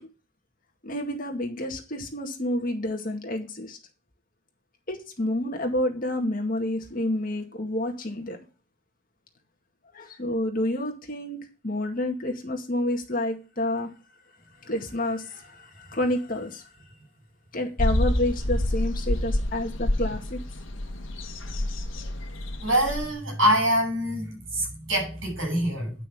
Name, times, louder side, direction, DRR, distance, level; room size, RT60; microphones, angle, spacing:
voice 1, 0.8-3.8 4.9-8.4 9.9-11.4 11.6-13.9 14.6-16.7 17.5-20.4, left 1 dB, 40° left, 2.0 m, -29 dB
sound 1, 17.8-23.1, left 1 dB, 70° left, 1.7 m, -28 dB
voice 2, 22.6-25.9, equal, 70° right, 7.0 m, -25 dB
9.8 x 6.2 x 6.1 m
head